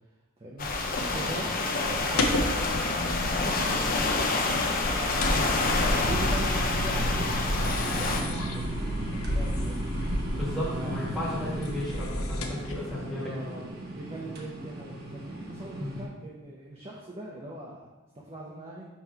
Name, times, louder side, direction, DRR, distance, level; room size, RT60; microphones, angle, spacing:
voice 1, 0.4-8.9 9.2-10.0 10.8-10.9 12.5-12.6 12.9-17.9 18.1-18.9, right 1 dB, 30° right, -4 dB, 0.7 m, -41 dB
sound 1, 0.6-8.2, left 3 dB, 40° left, 0.7 m, -27 dB
sound 2, 0.8-16.0, right 1 dB, 50° right, 1.0 m, -35 dB
sound 3, 1.5-12.9, left 1 dB, 90° left, 0.7 m, -35 dB
voice 2, 10.4-13.3 15.8-16.0, left 1 dB, ahead, -9 dB, 1.3 m, -34 dB
5.8 x 3.1 x 5.5 m, 1.1 s
head